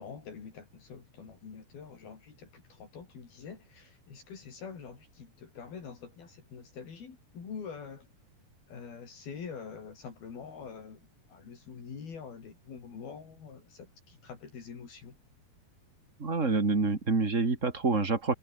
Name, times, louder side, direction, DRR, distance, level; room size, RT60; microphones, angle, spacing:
voice 1, 0.0-8.1 8.7-11.0 11.3-15.1, left 6 dB, 70° left, 6.3 m, -45 dB
voice 2, 16.2-18.3, right 4 dB, 25° right, 2.3 m, -27 dB
omnidirectional pair, 4.5 m